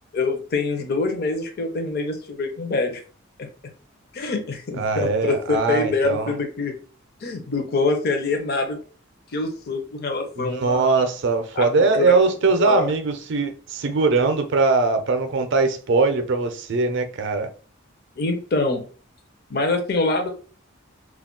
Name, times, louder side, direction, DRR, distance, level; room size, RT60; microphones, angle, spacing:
voice 1, 0.1-3.0 4.1-6.7 7.2-8.8 9.3-11.0 11.5-12.1 12.6-12.9 18.2-18.8 19.5-20.3, left 3 dB, 50° left, 0.5 m, -25 dB
voice 2, 4.8-6.3 10.4-17.5, right 4 dB, 60° right, 0.5 m, -21 dB
2.3 x 2.1 x 3.6 m
head